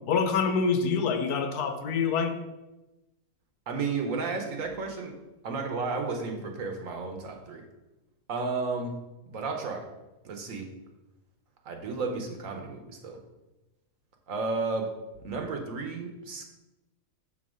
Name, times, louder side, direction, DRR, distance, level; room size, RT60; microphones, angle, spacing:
voice 1, 0.1-2.3, left 5 dB, 80° left, 7 dB, 1.3 m, -26 dB
voice 2, 3.7-5.2 5.4-7.6 8.3-8.9 9.3-9.9 10.2-10.7 11.6-13.2 14.3-14.9 15.2-16.5, right 4 dB, 60° right, 3 dB, 1.3 m, -32 dB
6.1 x 4.2 x 6.2 m, 1.0 s
omnidirectional pair, 1.6 m